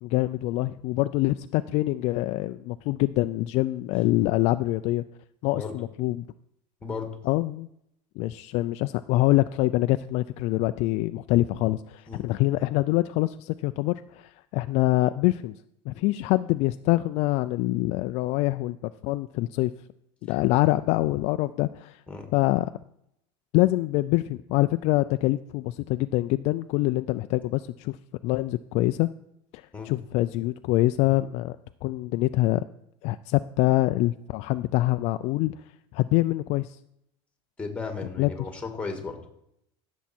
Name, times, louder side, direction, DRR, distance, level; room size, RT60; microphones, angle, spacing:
voice 1, 0.0-5.0 5.4-6.2 7.2-7.7 8.2-15.5 15.9-18.8 19.0-19.7 20.2-22.0 22.3-22.7 23.5-28.0 28.2-29.1 29.5-31.6 31.8-32.6 33.0-35.6 35.9-36.8 38.2-38.3, left 17 dB, 50° left, 11 dB, 0.4 m, -25 dB
voice 2, 37.6-39.2, left 4 dB, 10° left, 4 dB, 1.8 m, -34 dB
15.0 x 7.2 x 4.4 m, 0.76 s
supercardioid pair, 145°, 15 cm